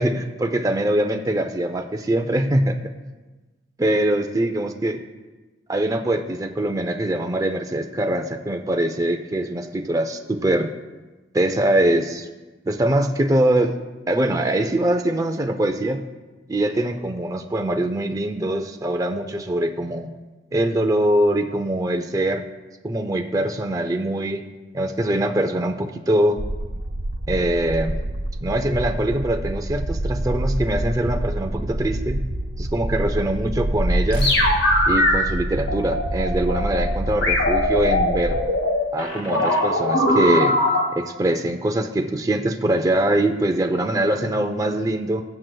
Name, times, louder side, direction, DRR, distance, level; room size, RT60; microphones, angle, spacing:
voice 1, 0.0-2.8 3.8-5.0 5.7-10.7 11.3-12.3 12.7-13.7 14.1-16.0 16.5-20.1 20.5-22.4 22.8-24.5 24.7-26.4 27.3-28.0 28.4-32.2 32.6-34.3 34.9-38.4 38.9-40.5 40.9-45.2, right 1 dB, 20° right, 4 dB, 0.5 m, -23 dB
sound 1, 26.4-38.4, right 1 dB, 70° right, 0.7 m, -27 dB
sound 2, 34.1-35.1 35.7-36.8 37.2-40.8, left 1 dB, 85° left, 2.1 m, -20 dB
19.0 x 7.6 x 2.3 m, 1.2 s
head